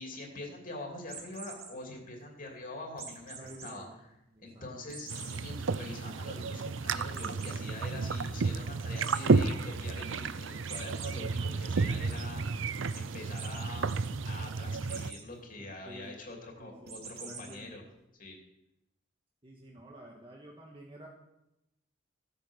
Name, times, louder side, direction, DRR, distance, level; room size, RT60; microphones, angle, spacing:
voice 1, 0.0-4.1 4.4-13.9 14.2-17.8 18.1-18.4, left 2 dB, 45° left, 1 dB, 2.8 m, -45 dB
sound 1, 1.1-1.7 3.0-3.7 4.1-4.2 4.9-5.4 5.9-6.0 6.3-6.4 7.1-7.6 9.0-9.2 10.7-11.1 11.5-12.1 12.9-13.0 13.3-13.5 13.8-14.1 14.8-15.2 16.9-17.5, right 5 dB, 50° right, 3.1 m, -45 dB
voice 2, 3.4-4.0 4.3-4.7 15.6-16.2 16.6-17.8 19.4-21.1, right 1 dB, 25° right, -2 dB, 1.7 m, -50 dB
sound 2, 5.1-15.1, right 4 dB, 70° right, 0.6 m, -32 dB
16.5 x 8.9 x 6.3 m, 0.88 s
head